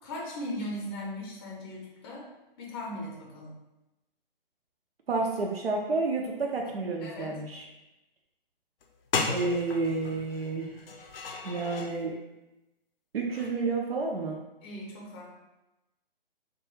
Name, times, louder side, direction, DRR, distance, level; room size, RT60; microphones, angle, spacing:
voice 1, 0.0-2.3 2.6-3.6 7.0-7.4 14.6-15.3, left 1 dB, 25° left, -3 dB, 0.5 m, -38 dB
voice 2, 5.1-7.6 9.2-10.7 11.4-12.1 13.1-14.4, right 3 dB, 90° right, 0 dB, 0.5 m, -30 dB
sound 1, 8.8-8.9 9.1-12.0 13.3-13.6, left 4 dB, 75° left, 0.5 m, -35 dB
2.3 x 2.2 x 3.0 m, 0.99 s
figure-of-eight pair, 130°, 29 cm